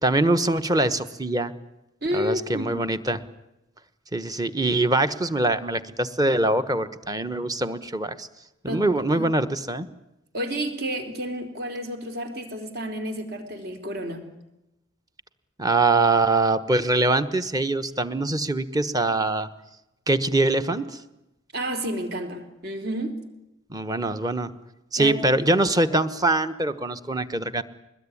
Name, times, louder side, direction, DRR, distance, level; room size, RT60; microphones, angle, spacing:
voice 1, 0.0-1.5 2.1-3.2 4.1-8.3 8.6-9.9 15.6-19.5 20.1-21.0 23.7-24.5 24.9-27.6, right 2 dB, 20° right, 11 dB, 1.2 m, -23 dB
voice 2, 2.0-2.7 8.6-8.9 9.1-9.3 10.3-14.2 21.5-23.2 25.0-25.2 25.9-26.0, equal, 55° right, 6 dB, 4.0 m, -30 dB
22.0 x 21.0 x 10.0 m, 0.91 s
head